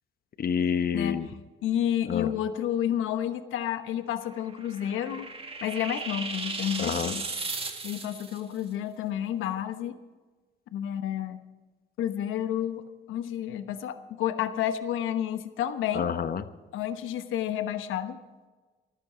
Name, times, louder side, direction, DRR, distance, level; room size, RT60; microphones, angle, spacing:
voice 1, 0.4-1.3 2.1-2.3 6.8-7.1 15.9-16.4, left 7 dB, 50° left, 12 dB, 1.0 m, -28 dB
voice 2, 1.6-5.3 5.6-7.2 7.8-10.0 10.7-11.4 12.0-12.8 13.1-16.1 16.7-18.2, left 10 dB, 85° left, 10 dB, 1.0 m, -30 dB
sound 1, 4.2-8.4, right 4 dB, 30° right, 1.9 m, -36 dB
14.0 x 13.5 x 5.0 m, 1.3 s
cardioid pair, 90°, 20 cm